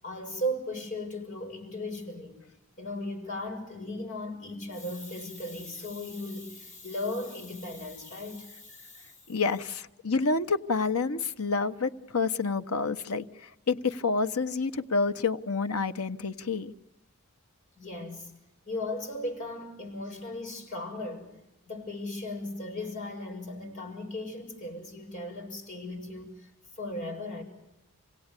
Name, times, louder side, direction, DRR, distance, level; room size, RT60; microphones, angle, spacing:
voice 1, 0.0-2.4 2.8-9.1 17.8-18.3 18.7-21.3 21.7-26.5 26.8-27.4, left 1 dB, 35° left, 7.2 m, -37 dB
voice 2, 9.3-16.7, left 4 dB, 85° left, 1.1 m, -28 dB
28.5 x 17.5 x 9.9 m
head